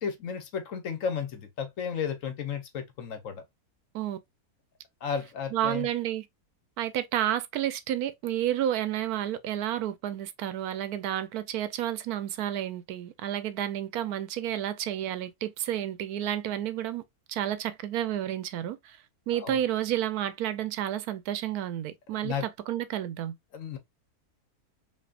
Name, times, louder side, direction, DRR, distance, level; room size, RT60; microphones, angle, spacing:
voice 1, 0.0-3.4 5.0-5.9 19.3-19.6 22.2-22.4 23.5-23.8, left 6 dB, 60° left, 1.1 m, -33 dB
voice 2, 5.5-6.3 6.8-17.0 17.3-19.0 19.3-23.4, right 11 dB, 80° right, 1.1 m, -31 dB
5.3 x 2.8 x 2.4 m
omnidirectional pair, 1.6 m